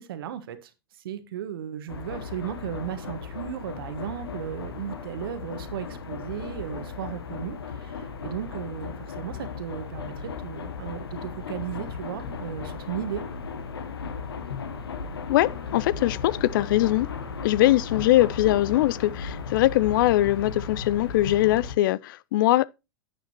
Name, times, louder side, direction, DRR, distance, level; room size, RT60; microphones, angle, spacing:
voice 1, 0.0-13.2, right 10 dB, 65° right, 1.4 m, -36 dB
sound 1, 1.9-21.7, left 5 dB, 75° left, 1.4 m, -36 dB
voice 2, 15.3-17.1 17.4-22.7, left 15 dB, 55° left, 0.4 m, -22 dB
10.0 x 8.8 x 3.0 m
figure-of-eight pair, 95°, 13 cm